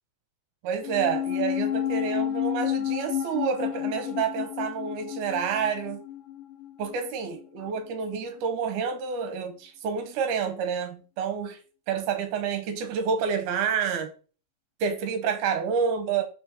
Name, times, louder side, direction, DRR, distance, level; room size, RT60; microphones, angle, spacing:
voice 1, 0.6-6.0 6.8-11.6 11.9-14.1 14.8-16.2, right 6 dB, 70° right, 2.3 m, -29 dB
sound 1, 0.8-7.4 7.6-7.7, left 10 dB, 80° left, 2.2 m, -31 dB
5.8 x 4.2 x 4.7 m
omnidirectional pair, 4.0 m